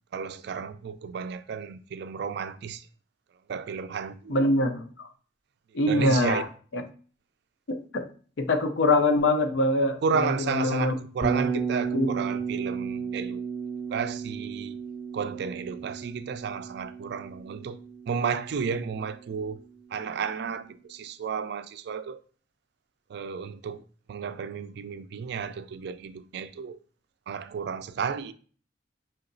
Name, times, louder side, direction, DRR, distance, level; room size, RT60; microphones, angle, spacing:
voice 1, 0.1-2.9 3.5-4.4 5.9-6.4 10.0-13.4 13.9-14.8 15.1-17.8 18.1-19.6 19.9-22.2 23.1-26.8 27.3-28.3, right 6 dB, 65° right, 0.3 m, -32 dB
voice 2, 4.3-5.1 5.7-6.4 6.7-6.8 7.7-8.1 8.4-11.0 11.9-12.1, left 2 dB, 80° left, 0.6 m, -24 dB
Bass guitar, 11.2-19.3, right 5 dB, 10° right, 0.6 m, -33 dB
5.7 x 2.9 x 2.6 m
head